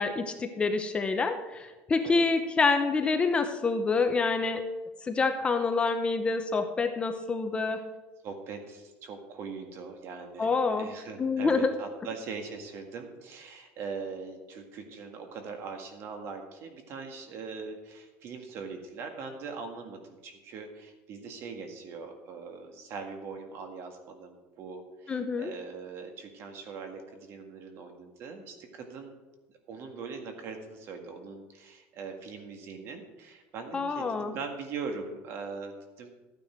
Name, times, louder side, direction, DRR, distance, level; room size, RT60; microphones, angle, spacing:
voice 1, 0.0-4.6 5.0-7.8 10.4-11.7 25.1-25.5 33.7-34.3, left 4 dB, 20° left, 7 dB, 0.8 m, -27 dB
voice 2, 8.2-29.2 29.7-36.1, right 4 dB, 50° right, 5 dB, 1.9 m, -41 dB
13.5 x 9.6 x 4.5 m, 1.2 s
cardioid pair, 145°, 6 cm